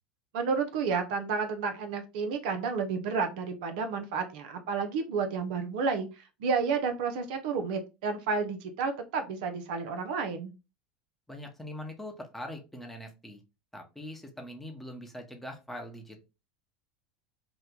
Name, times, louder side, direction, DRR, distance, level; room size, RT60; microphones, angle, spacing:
voice 1, 0.3-10.5, right 5 dB, 70° right, 6 dB, 0.6 m, -31 dB
voice 2, 11.3-13.4 13.7-16.2, left 1 dB, 5° left, 3 dB, 0.9 m, -42 dB
2.9 x 2.2 x 3.6 m, 0.28 s
hypercardioid pair, 90°, 5 cm